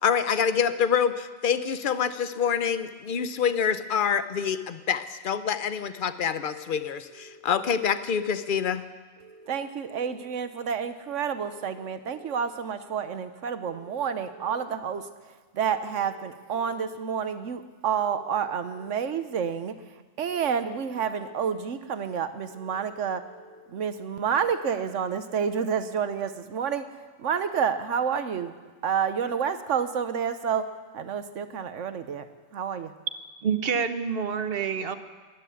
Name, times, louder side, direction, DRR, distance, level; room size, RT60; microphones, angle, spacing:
voice 1, 0.0-8.8, left 7 dB, 50° left, 12 dB, 0.7 m, -26 dB
sound 1, 7.1-8.1 9.2-10.3 11.4-12.5 13.6-14.7 15.8-17.0 18.1-19.2 20.3-21.4 22.5-23.6, right 2 dB, 65° left, 3.8 m, -51 dB
voice 2, 9.5-15.1 15.5-19.8 20.2-23.3 23.7-26.9 27.2-28.6 28.8-30.7 30.9-32.3 32.5-32.9, right 7 dB, 70° right, 11 dB, 1.1 m, -29 dB
voice 3, 33.4-35.0, right 6 dB, 50° right, 10 dB, 1.0 m, -27 dB
13.0 x 11.0 x 9.3 m, 1.4 s
omnidirectional pair, 1.4 m